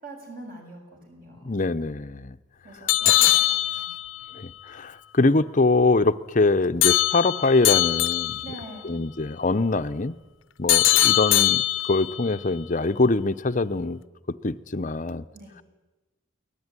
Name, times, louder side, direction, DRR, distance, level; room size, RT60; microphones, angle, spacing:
voice 1, 0.0-1.5 2.6-3.9 8.4-9.0 15.3-15.5, right 2 dB, 45° right, 2 dB, 7.1 m, -43 dB
voice 2, 1.4-2.4 3.0-3.1 4.3-8.4 8.8-10.1 10.6-14.0 14.3-15.2, left 3 dB, 40° left, 12 dB, 0.7 m, -23 dB
sound 1, 2.9-4.2 6.8-8.6 10.7-12.2, left 14 dB, 75° left, 0.7 m, -21 dB
23.5 x 18.5 x 9.8 m, 1.1 s
head